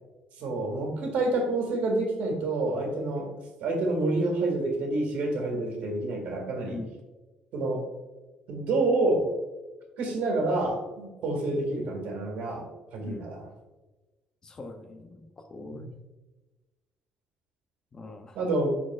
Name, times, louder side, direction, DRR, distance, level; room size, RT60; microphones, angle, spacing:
voice 1, 0.4-3.3 3.6-6.8 7.5-7.8 8.5-9.3 10.0-12.7 12.9-13.4 15.7-15.9 18.4-18.7, right 2 dB, 70° right, 2 dB, 2.0 m, -28 dB
voice 2, 6.6-7.0 13.0-13.3 14.4-15.9 17.9-18.4, left 2 dB, 25° left, 6 dB, 0.6 m, -42 dB
11.5 x 4.2 x 2.4 m, 1.1 s
cardioid pair, 160°, 3 cm